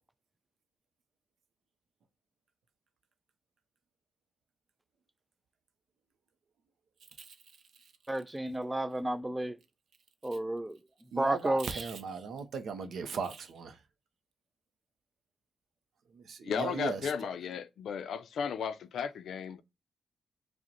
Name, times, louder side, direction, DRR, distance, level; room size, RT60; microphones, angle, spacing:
voice 1, 8.1-9.6 10.2-10.8 11.2-11.7, right 1 dB, 15° right, 0.3 m, -31 dB
voice 2, 11.1-13.8 16.1-17.1, right 5 dB, 75° right, 0.6 m, -38 dB
voice 3, 16.4-19.6, left 7 dB, 80° left, 0.4 m, -35 dB
5.0 x 2.1 x 2.8 m
cardioid pair, 95°, 0 cm